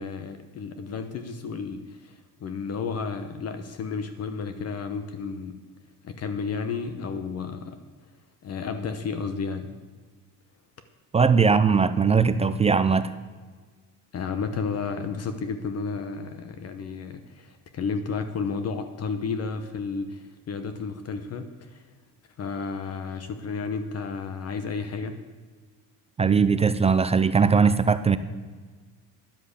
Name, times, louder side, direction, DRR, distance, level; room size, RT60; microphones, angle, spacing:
voice 1, 0.0-5.5 6.0-7.8 8.4-9.7 14.1-21.8 22.4-25.2, left 5 dB, 45° left, 0.9 m, -32 dB
voice 2, 11.1-13.1 26.2-28.2, right 5 dB, 20° right, 0.4 m, -20 dB
10.5 x 7.5 x 8.2 m
cardioid pair, 125°, 36 cm